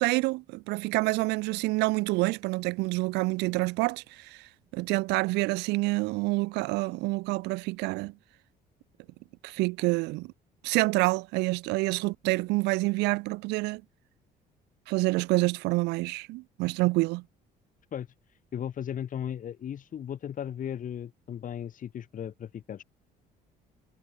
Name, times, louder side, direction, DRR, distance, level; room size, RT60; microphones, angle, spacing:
voice 1, 0.0-4.4 4.7-8.1 9.4-10.3 10.6-13.8 14.9-17.2, right 23 dB, 90° right, 0.5 m, -27 dB
voice 2, 17.9-22.8, left 9 dB, 50° left, 6.6 m, -36 dB
cardioid pair, 110°, 17 cm